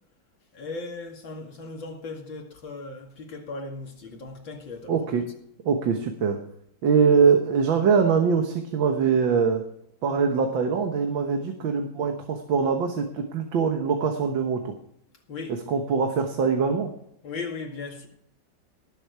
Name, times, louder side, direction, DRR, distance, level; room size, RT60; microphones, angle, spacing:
voice 1, 0.5-4.9 15.3-15.6 17.2-18.1, left 3 dB, 80° left, 3.0 m, -37 dB
voice 2, 4.9-5.2 5.7-6.4 6.8-9.6 10.0-14.7 15.7-16.9, right 6 dB, 80° right, 2.0 m, -23 dB
18.5 x 7.2 x 4.7 m
omnidirectional pair, 2.1 m